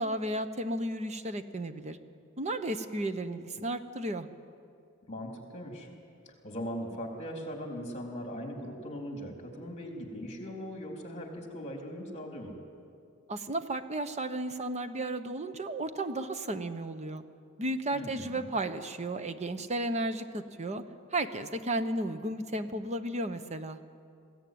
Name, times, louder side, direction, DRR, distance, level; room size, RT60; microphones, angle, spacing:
voice 1, 0.0-2.0 2.4-4.3 13.3-17.2 17.6-20.8 21.1-23.8, right 1 dB, 30° right, 10 dB, 0.9 m, -33 dB
voice 2, 5.1-5.9 6.3-12.5 17.9-18.5, equal, 30° left, 1 dB, 3.6 m, -40 dB
21.0 x 16.0 x 9.4 m, 2.4 s
head